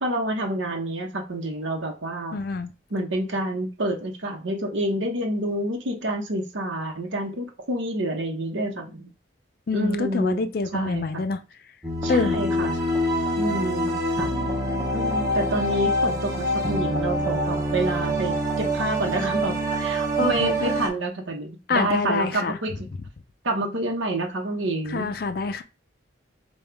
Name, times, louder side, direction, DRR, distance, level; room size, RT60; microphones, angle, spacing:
voice 1, 0.0-2.4 2.9-9.1 9.7-10.5 10.7-11.2 12.0-12.8 13.4-14.3 14.9-22.9 23.4-25.1, right 1 dB, 80° right, 0.9 m, -28 dB
voice 2, 2.3-2.7 9.7-11.4 12.1-12.4 20.2-20.7 21.7-22.6 24.9-25.6, left 4 dB, 50° left, 0.4 m, -26 dB
sound 1, 11.8-20.9, equal, 15° right, 0.8 m, -25 dB
5.3 x 2.3 x 3.3 m
head